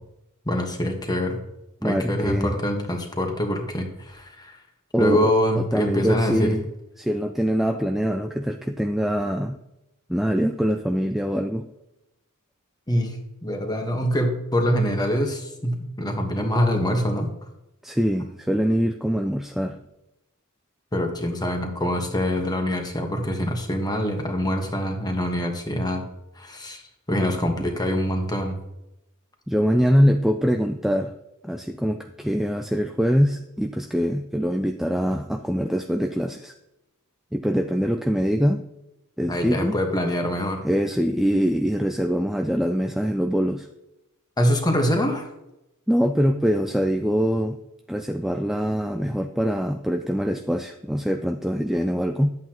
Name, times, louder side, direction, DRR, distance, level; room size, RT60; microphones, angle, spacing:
voice 1, 0.4-1.4 1.8-4.6 5.0-6.6 12.9-13.2 13.4-17.3 20.9-26.0 26.4-26.8 27.1-28.6 39.2-40.6 44.4-45.3, equal, 20° left, 4 dB, 1.3 m, -24 dB
voice 2, 1.8-2.5 4.9-6.7 7.0-9.6 10.1-11.7 17.8-19.8 29.5-31.1 31.4-36.5 37.3-38.6 39.2-39.8 40.6-43.7 45.9-47.6 47.9-52.3, equal, ahead, 5 dB, 0.3 m, -23 dB
11.0 x 8.1 x 3.0 m, 0.91 s
head